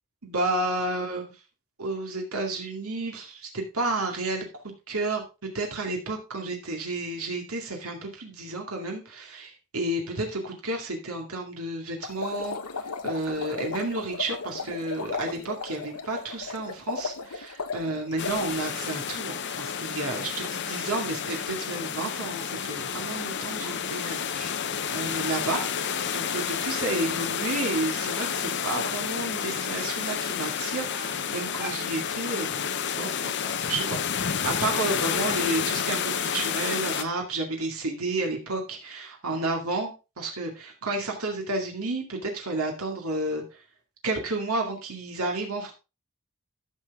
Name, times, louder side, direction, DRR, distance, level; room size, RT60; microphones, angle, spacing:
voice 1, 0.2-1.2 1.8-4.4 4.9-5.2 5.5-12.6 13.0-25.6 25.9-33.3 33.7-34.0 34.2-43.6 44.0-45.7, right 2 dB, 75° right, 1 dB, 2.2 m, -31 dB
sound 1, 12.0-18.5, left 5 dB, 85° left, 1.1 m, -35 dB
sound 2, 18.2-37.0, left 7 dB, 50° left, 0.7 m, -30 dB
sound 3, 22.6-36.2, right 1 dB, 10° right, 1.8 m, -48 dB
12.5 x 6.1 x 3.6 m, 0.29 s
head